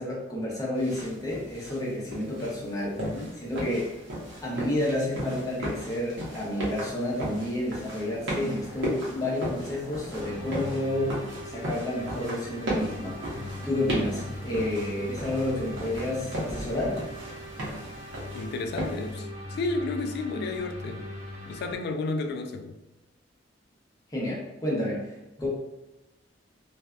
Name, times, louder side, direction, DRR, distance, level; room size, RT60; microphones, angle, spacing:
voice 1, 0.0-3.9 4.4-17.0 24.1-25.5, left 1 dB, 20° left, -5 dB, 0.7 m, -30 dB
sound 1, 0.8-19.1, equal, 75° right, 0.8 m, -36 dB
voice 2, 3.0-3.3 18.3-21.0 21.5-22.8, left 3 dB, 60° left, 5 dB, 0.3 m, -32 dB
sound 2, 3.5-18.2, equal, 15° right, 1.1 m, -45 dB
sound 3, 10.2-21.7, left 1 dB, 40° right, 0.7 m, -40 dB
2.6 x 2.2 x 2.2 m, 0.99 s
head